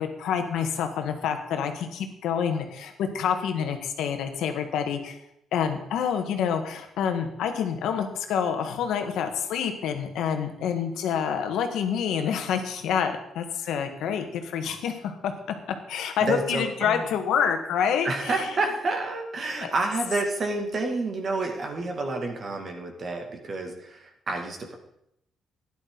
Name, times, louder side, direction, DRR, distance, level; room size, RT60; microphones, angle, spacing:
voice 1, 0.0-5.2 5.5-15.3 15.9-18.4, left 7 dB, 85° left, 6 dB, 1.4 m, -27 dB
voice 2, 16.2-17.1 18.0-24.8, right 3 dB, 45° right, 3 dB, 2.2 m, -29 dB
12.0 x 10.5 x 3.9 m, 0.79 s
cardioid pair, 90°, 0 cm